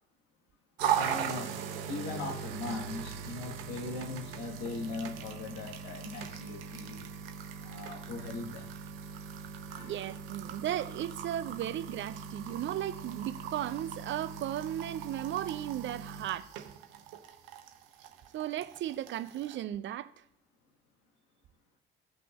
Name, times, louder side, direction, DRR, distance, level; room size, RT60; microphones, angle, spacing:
sound 1, 0.8-19.6, right 8 dB, 75° right, 0.8 m, -39 dB
voice 1, 0.9-1.6 1.9-7.1 7.6-8.7 9.0-9.1 9.7-10.0, left 3 dB, 60° left, 1.4 m, -40 dB
voice 2, 9.8-16.7 18.3-20.1, right 12 dB, 40° right, 0.5 m, -36 dB
16.5 x 5.9 x 2.3 m
figure-of-eight pair, 50°, 29 cm